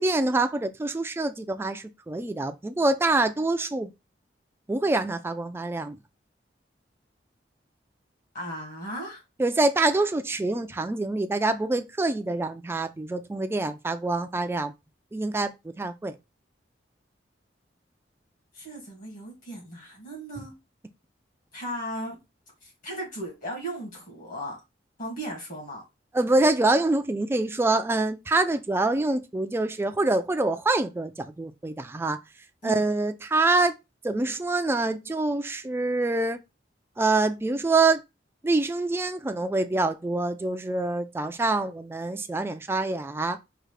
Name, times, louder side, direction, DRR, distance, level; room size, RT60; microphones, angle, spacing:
voice 1, 0.0-3.9 4.7-6.0 9.4-14.7 15.1-16.1 26.1-32.2 32.6-33.7 34.0-36.4 37.0-38.0 38.4-43.4, right 2 dB, 15° right, 0.3 m, -25 dB
voice 2, 8.3-9.2 18.5-20.5 21.5-22.2 22.6-24.6 25.0-25.8 32.6-32.8, right 1 dB, 50° left, 2.1 m, -36 dB
4.8 x 2.4 x 3.2 m
head